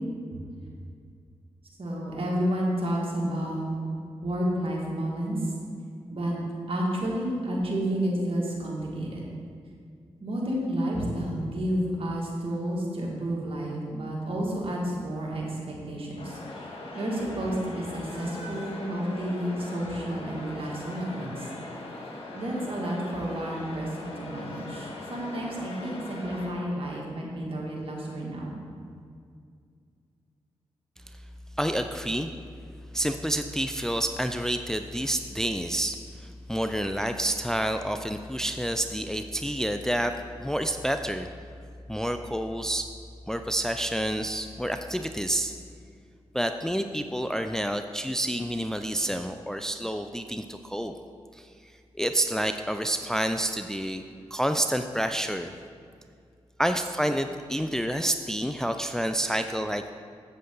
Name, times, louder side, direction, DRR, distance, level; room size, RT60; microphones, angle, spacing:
voice 1, 1.8-3.7 4.2-5.5 6.1-6.3 6.7-9.3 10.2-16.7 16.9-21.5 22.3-28.6, equal, 60° right, -3 dB, 2.1 m, -30 dB
sound 1, 16.2-26.5, left 2 dB, 60° left, 1.6 m, -40 dB
voice 2, 31.6-32.3 32.9-41.3 41.9-42.9 43.3-45.5 46.3-50.9 51.3-51.5 52.0-54.0 54.3-55.5 56.6-59.9, right 1 dB, 5° left, 7 dB, 0.4 m, -29 dB
8.0 x 7.6 x 3.9 m, 2.2 s
cardioid pair, 50°, 11 cm